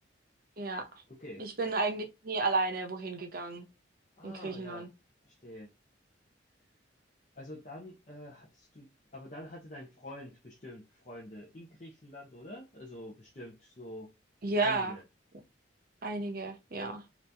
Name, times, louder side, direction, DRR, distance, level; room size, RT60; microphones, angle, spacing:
voice 1, 1.4-3.7 4.2-4.9 14.4-14.9 16.0-17.0, right 3 dB, 45° right, 0.8 m, -32 dB
voice 2, 4.2-4.9 5.2-5.7 7.3-14.1 14.6-15.0, left 1 dB, 35° left, 0.8 m, -46 dB
3.0 x 2.7 x 3.4 m
head